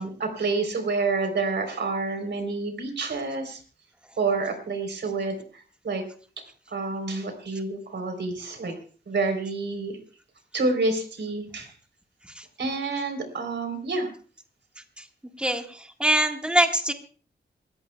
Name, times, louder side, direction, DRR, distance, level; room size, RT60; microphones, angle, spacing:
voice 1, 0.0-3.6 4.2-6.0 6.7-8.8 9.1-10.0 10.5-11.7 12.6-14.1, right 3 dB, 75° right, 6 dB, 3.7 m, -28 dB
voice 2, 15.4-16.9, right 1 dB, 5° right, 4 dB, 1.7 m, -23 dB
28.0 x 14.0 x 2.3 m, 0.40 s
wide cardioid pair, 140°, 19 cm